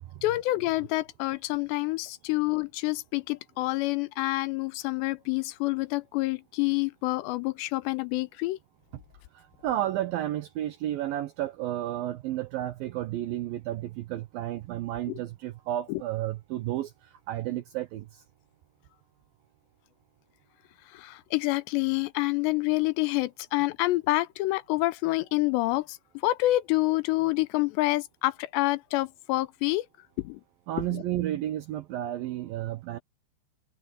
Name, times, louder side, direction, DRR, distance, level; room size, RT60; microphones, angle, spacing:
voice 1, 0.2-8.6 15.1-15.2 15.9-16.0 20.9-26.0 26.2-29.9 30.2-30.4 30.9-31.0, left 19 dB, 80° left, 2.7 m, -27 dB
voice 2, 9.3-18.1 30.7-33.0, right 13 dB, 85° right, 2.0 m, -32 dB
omnidirectional pair, 5.3 m